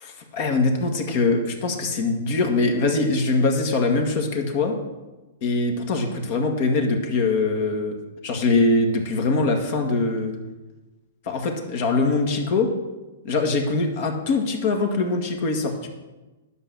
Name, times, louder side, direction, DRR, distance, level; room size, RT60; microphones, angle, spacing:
voice 1, 0.0-4.7 5.4-7.9 8.2-10.4 11.3-12.7 13.2-15.9, left 3 dB, 50° left, 4 dB, 1.9 m, -22 dB
11.0 x 5.7 x 7.8 m, 1.1 s
hypercardioid pair, 145°, 0 cm